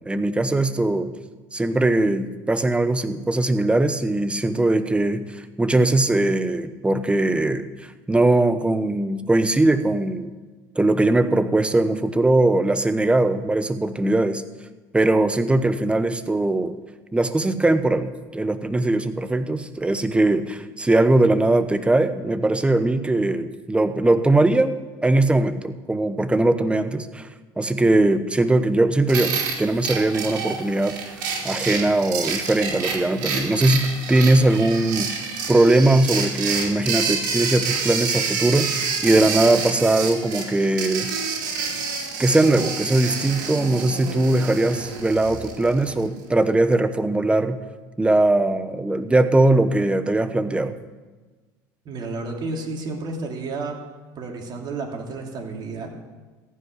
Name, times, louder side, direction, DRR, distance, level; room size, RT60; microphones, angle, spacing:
voice 1, 0.0-1.1 1.5-5.2 5.6-7.7 8.1-10.3 10.8-14.4 14.9-16.8 17.1-24.7 25.0-27.3 27.6-31.2 31.4-38.7 39.0-41.1 42.2-47.6 48.0-50.8, right 2 dB, 10° right, 11 dB, 0.9 m, -20 dB
sound 1, 29.1-46.1, right 5 dB, 85° right, 2.6 m, -28 dB
voice 2, 51.8-53.8 54.2-55.9, right 3 dB, 45° right, 1 dB, 2.8 m, -31 dB
15.0 x 5.4 x 9.7 m, 1.3 s
supercardioid pair, 85°, 10 cm